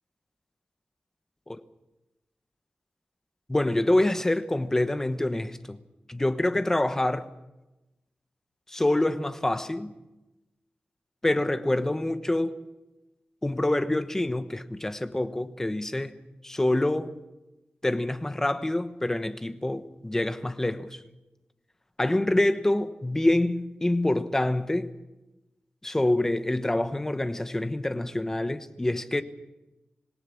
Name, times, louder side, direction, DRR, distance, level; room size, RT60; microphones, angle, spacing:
voice 1, 3.5-5.8 6.1-7.3 8.7-9.9 11.2-12.6 13.4-16.2 16.4-17.1 17.8-21.0 22.0-24.9 25.8-29.2, left 1 dB, 15° left, 1.0 m, -26 dB
26.5 x 17.5 x 7.1 m
wide cardioid pair, 165°, 3 cm